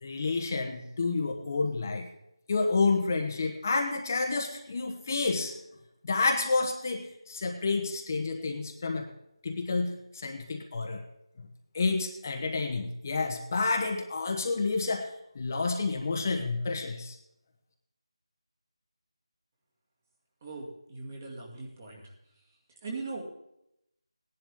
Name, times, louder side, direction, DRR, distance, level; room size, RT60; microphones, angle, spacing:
voice 1, 0.0-2.1 2.5-5.5 6.0-9.1 9.4-11.0 11.4-11.5 11.7-15.1 15.3-17.2, left 3 dB, 30° left, 3 dB, 1.0 m, -29 dB
voice 2, 20.4-22.1 22.7-23.2, right 3 dB, 25° right, -2 dB, 2.2 m, -40 dB
17.5 x 10.5 x 3.6 m, 0.82 s
figure-of-eight pair, 170°, 3 cm